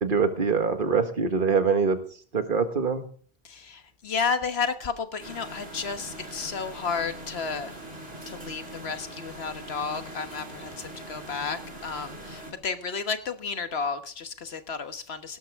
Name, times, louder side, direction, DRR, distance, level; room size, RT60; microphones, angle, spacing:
voice 1, 0.0-2.0 2.3-3.0, right 5 dB, 55° right, 8 dB, 1.7 m, -24 dB
voice 2, 3.4-7.8 8.3-15.4, left 5 dB, 85° left, 9 dB, 1.5 m, -32 dB
sound 1, 5.2-12.5, right 1 dB, 75° right, 3.1 m, -42 dB
17.5 x 12.5 x 3.6 m, 0.43 s
omnidirectional pair, 1.0 m